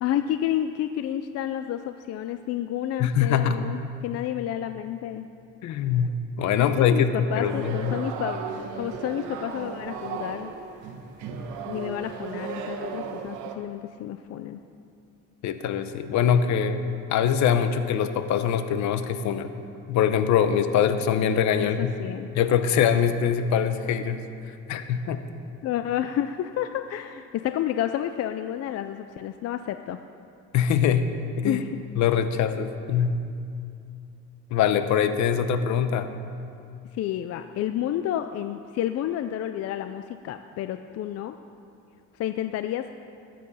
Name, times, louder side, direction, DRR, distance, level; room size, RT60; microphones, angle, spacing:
voice 1, 0.0-5.3 6.6-8.4 8.8-10.5 11.7-14.6 21.6-22.3 25.6-30.0 31.4-31.8 36.9-41.4 42.2-42.9, left 11 dB, 55° left, 9 dB, 0.5 m, -30 dB
voice 2, 3.0-3.6 5.6-8.0 15.4-16.8 17.1-19.5 19.9-21.9 22.3-24.2 24.7-25.2 30.5-31.1 31.4-31.6 32.0-33.2 34.5-36.1, left 8 dB, 75° left, 10 dB, 0.9 m, -23 dB
sound 1, 7.3-13.6, right 6 dB, 90° right, 1.2 m, -35 dB
20.5 x 7.8 x 5.6 m, 2.5 s
cardioid pair, 130°, 29 cm